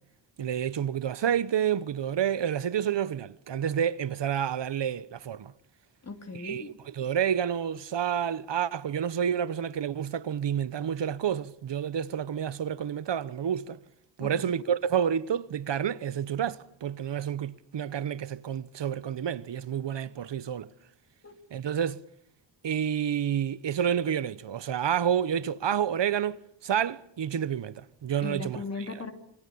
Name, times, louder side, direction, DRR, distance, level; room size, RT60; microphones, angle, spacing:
voice 1, 0.4-5.5 6.4-13.8 14.2-20.7 21.5-22.0 22.6-28.6, right 9 dB, 70° right, 1.2 m, -29 dB
voice 2, 6.0-6.7 14.2-14.5 21.2-21.4 28.2-29.1, left 3 dB, 35° left, 3.3 m, -37 dB
26.5 x 23.5 x 8.6 m
wide cardioid pair, 175°, 44 cm